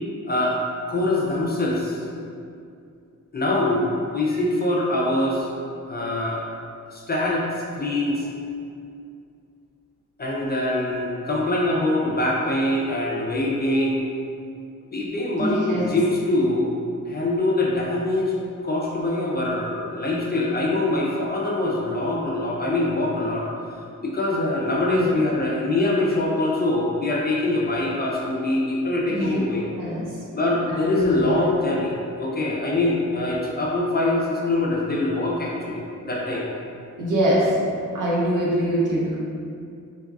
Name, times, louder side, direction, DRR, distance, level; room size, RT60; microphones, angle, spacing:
voice 1, 0.3-0.6 0.9-2.0 3.3-5.5 5.9-6.4 6.9-7.5 7.7-8.3 10.2-14.0 14.9-16.7 17.1-18.3 18.6-23.5 24.0-29.7 30.3-36.5, left 2 dB, 30° left, -3 dB, 0.4 m, -23 dB
voice 2, 15.4-15.8 24.9-25.2 29.1-29.4 29.7-30.1 30.9-31.5 37.0-37.5 37.9-39.2, right 1 dB, 70° right, -6 dB, 0.8 m, -23 dB
3.5 x 2.3 x 2.3 m, 2.5 s
wide cardioid pair, 135°, 32 cm